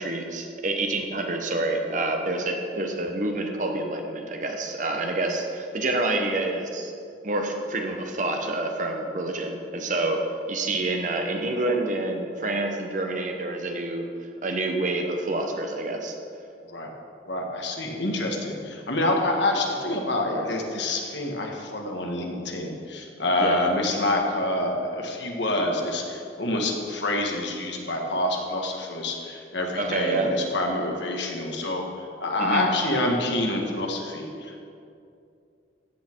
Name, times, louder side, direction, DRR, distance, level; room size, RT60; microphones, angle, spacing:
voice 1, 0.0-6.9 7.2-14.1 14.4-16.2 23.4-23.6 29.7-30.3 32.4-32.7, right 2 dB, 40° right, 3 dB, 1.1 m, -27 dB
voice 2, 17.3-34.6, left 1 dB, 65° left, 1 dB, 1.6 m, -27 dB
14.5 x 8.5 x 4.6 m, 2.5 s
head